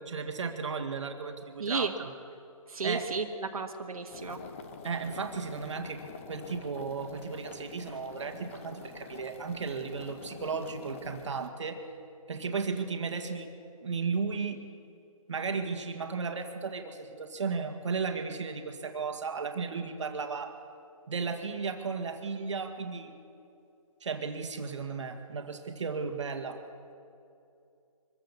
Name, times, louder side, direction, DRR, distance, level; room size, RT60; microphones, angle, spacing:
voice 1, 0.0-2.1 2.8-3.1 4.8-11.9 12.3-13.5 13.8-14.6 15.3-20.6 21.1-23.1 24.0-26.6, right 5 dB, 55° right, 5 dB, 1.9 m, -35 dB
voice 2, 1.6-1.9 2.7-4.4, right 4 dB, 80° right, 3 dB, 1.6 m, -33 dB
sound 1, 4.1-11.5, left 5 dB, 20° left, 1.0 m, -46 dB
24.0 x 15.0 x 7.2 m, 2.7 s
hypercardioid pair, 170°, 18 cm